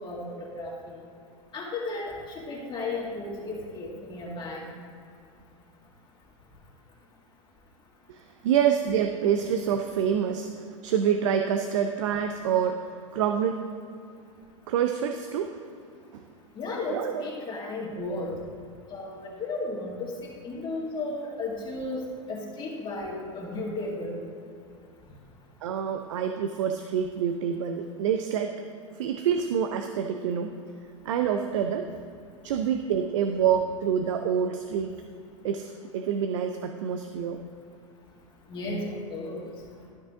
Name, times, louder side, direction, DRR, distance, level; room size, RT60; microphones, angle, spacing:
voice 1, 0.0-1.0 1.5-4.7 16.6-18.3 18.9-20.1 20.4-22.0 22.3-24.2 38.5-39.4, left 2 dB, 30° left, -4 dB, 2.1 m, -34 dB
voice 2, 8.1-12.9 13.1-13.6 14.7-15.6 16.1-16.2 16.9-17.2 25.6-28.5 29.0-30.5 31.0-31.9 32.4-34.9 35.4-37.4, right 8 dB, 70° right, 6 dB, 0.6 m, -27 dB
12.5 x 5.6 x 3.6 m, 2.4 s
hypercardioid pair, 90°, 17 cm